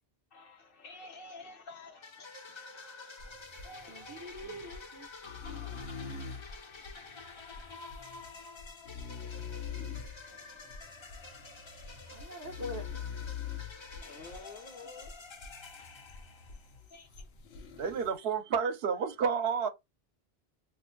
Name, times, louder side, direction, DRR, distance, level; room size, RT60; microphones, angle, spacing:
voice 1, 0.3-4.3 7.3-7.7 8.1-8.5 9.7-9.8 10.3-10.6 11.1-11.2 12.2-12.3 13.6-15.6 16.9-17.3, left 3 dB, 60° left, 1.0 m, -52 dB
sound 1, 2.0-16.8, left 3 dB, 35° left, 0.5 m, -49 dB
sound 2, 3.2-14.7 15.0-18.1, left 7 dB, 85° left, 0.9 m, -45 dB
voice 2, 3.9-6.2 12.1-13.1, equal, 30° right, 0.4 m, -45 dB
voice 3, 17.8-19.7, right 6 dB, 70° right, 0.8 m, -30 dB
2.5 x 2.5 x 3.7 m
omnidirectional pair, 1.1 m